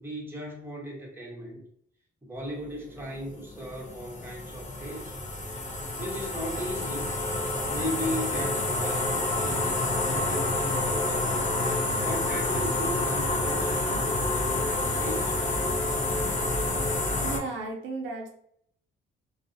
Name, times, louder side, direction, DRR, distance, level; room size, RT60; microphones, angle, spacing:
voice 1, 0.0-1.6 2.2-5.1 6.0-7.1 7.7-11.2 12.0-15.4, equal, 10° right, -2 dB, 0.8 m, -37 dB
sound 1, 3.0-17.4, left 2 dB, 40° left, 0.6 m, -28 dB
voice 2, 17.1-18.3, right 3 dB, 75° right, 1 dB, 0.6 m, -34 dB
2.4 x 2.0 x 2.5 m, 0.67 s
cardioid pair, 90°, 20 cm